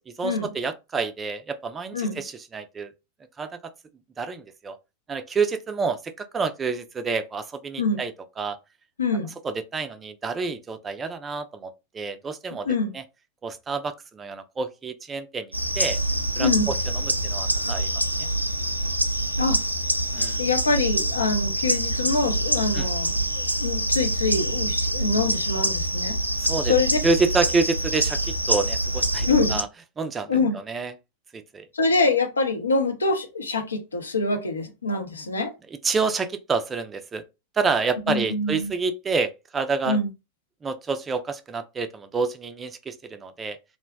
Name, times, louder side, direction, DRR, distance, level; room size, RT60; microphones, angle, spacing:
voice 1, 0.2-2.9 3.4-3.7 4.2-4.8 5.1-8.6 9.4-12.7 12.9-13.0 13.4-16.0 16.4-18.3 20.1-20.4 22.7-22.9 26.3-26.7 27.0-29.7 30.0-30.9 31.3-31.7 35.8-37.2 37.5-40.0 40.6-43.6, right 4 dB, 20° right, 0.4 m, -28 dB
voice 2, 9.0-9.3 12.7-12.9 16.4-16.7 19.4-19.6 20.4-26.2 26.6-27.0 29.2-29.6 30.3-30.6 31.7-35.5 38.1-38.7 39.9-40.1, left 3 dB, 75° left, 0.6 m, -25 dB
sound 1, 15.5-29.6, right 1 dB, 90° right, 0.3 m, -25 dB
2.5 x 2.1 x 3.4 m
figure-of-eight pair, 90°, 0 cm